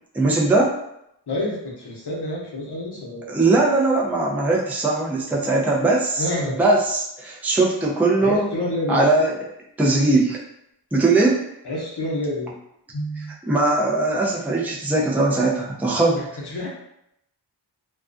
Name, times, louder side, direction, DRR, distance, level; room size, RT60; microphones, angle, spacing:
voice 1, 0.1-0.8 3.3-6.3 6.6-8.5 8.9-9.3 9.8-10.4 10.9-11.4 13.5-16.2, right 2 dB, 5° right, -3 dB, 0.5 m, -20 dB
voice 2, 1.3-3.3 6.2-6.6 8.2-9.0 11.6-12.5 12.9-13.3 16.1-16.7, left 1 dB, 60° left, -3 dB, 0.8 m, -28 dB
2.3 x 2.3 x 2.5 m, 0.78 s
wide cardioid pair, 40°, 44 cm